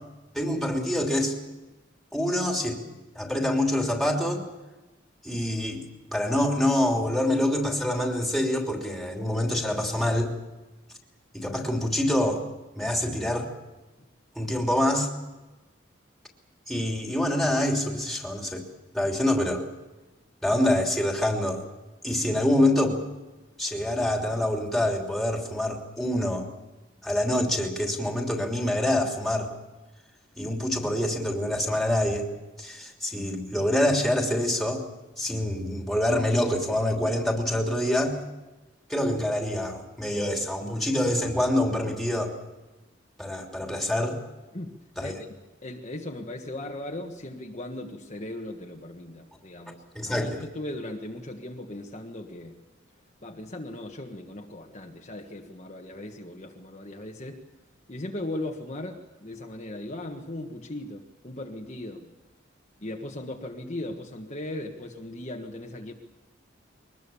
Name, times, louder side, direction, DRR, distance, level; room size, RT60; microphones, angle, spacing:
voice 1, 0.3-1.4 2.1-2.8 3.1-4.4 5.2-5.8 6.1-10.3 11.3-12.4 12.8-13.5 14.4-15.1 16.7-18.6 18.9-19.6 20.4-21.6 22.0-23.0 23.6-26.5 27.0-29.5 30.4-32.2 32.6-34.8 35.2-38.2 38.9-42.3 43.2-44.2 45.0-45.1 49.9-50.3, left 1 dB, ahead, 1 dB, 3.1 m, -26 dB
voice 2, 45.6-52.6 53.2-57.4 57.9-62.1 62.8-65.9, left 1 dB, 35° left, 1 dB, 1.6 m, -38 dB
23.5 x 20.0 x 7.1 m, 1.1 s
head